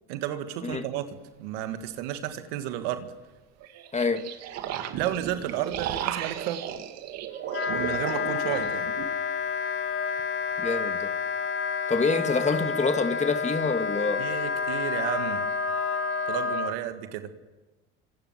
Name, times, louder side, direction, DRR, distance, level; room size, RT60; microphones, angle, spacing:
voice 1, 0.1-3.1 4.9-6.7 7.7-8.9 14.2-15.4 16.3-17.3, right 12 dB, 80° right, 8 dB, 2.1 m, -32 dB
sound 1, 0.7-0.8 3.6-9.1, right 10 dB, 60° right, 2.3 m, -35 dB
voice 2, 3.9-4.2 10.6-11.1 11.9-14.2, left 4 dB, 25° left, 7 dB, 2.5 m, -26 dB
Wind instrument woodwind instrument, 7.5-16.7, left 5 dB, 45° left, 2.2 m, -29 dB
26.5 x 25.5 x 7.5 m, 1.2 s
hypercardioid pair, 80°, 29 cm